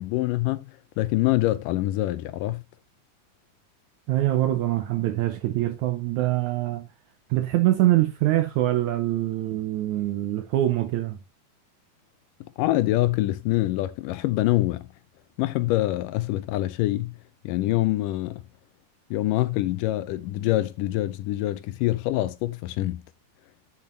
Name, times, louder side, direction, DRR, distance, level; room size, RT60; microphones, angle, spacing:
voice 1, 0.0-2.6 12.6-14.9 15.4-17.2 17.4-18.4 19.1-23.0, left 16 dB, 80° left, 2.1 m, -25 dB
voice 2, 4.1-6.9 7.3-11.2, right 15 dB, 75° right, 1.8 m, -24 dB
10.0 x 7.1 x 3.0 m
omnidirectional pair, 4.1 m